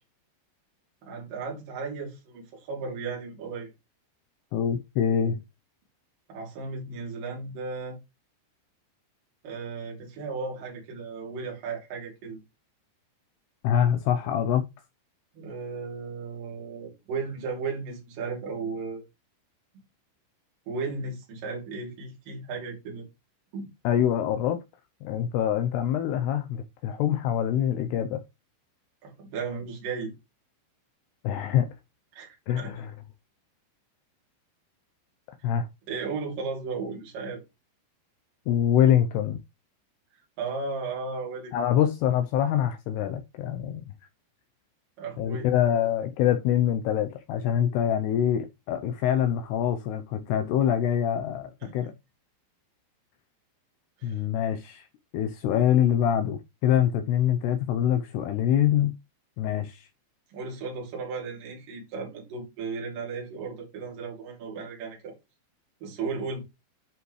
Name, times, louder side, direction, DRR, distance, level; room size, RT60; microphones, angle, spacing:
voice 1, 1.0-3.7 6.3-8.0 9.4-12.4 15.3-19.0 20.7-23.1 23.5-23.7 29.0-30.1 32.2-32.8 35.9-37.4 40.4-41.5 45.0-45.5 51.6-51.7 54.0-54.2 60.3-65.1 65.8-66.4, right 4 dB, 50° right, 4.4 m, -35 dB
voice 2, 4.5-5.4 13.6-14.6 23.8-24.6 25.0-28.2 31.2-31.7 32.5-32.9 35.4-35.7 38.5-39.4 41.5-43.9 45.2-51.9 54.0-54.9 55.1-58.9 59.4-59.9, left 10 dB, 85° left, 2.5 m, -25 dB
10.5 x 5.3 x 3.2 m
omnidirectional pair, 5.4 m